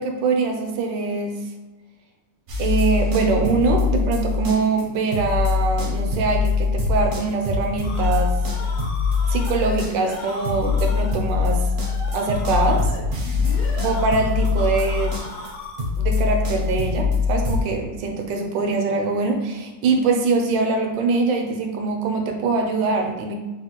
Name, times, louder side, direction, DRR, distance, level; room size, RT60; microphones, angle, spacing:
voice 1, 0.0-1.3 2.6-8.4 9.3-11.7 12.1-12.9 13.8-15.2 16.0-23.3, right 4 dB, 80° right, 3 dB, 1.2 m, -23 dB
sound 1, 2.5-4.8 5.1-17.6, left 5 dB, 60° right, 0.7 m, -23 dB
sound 2, 7.8-16.0, left 2 dB, 75° left, 0.8 m, -36 dB
3.5 x 2.3 x 2.8 m, 1.1 s
omnidirectional pair, 2.0 m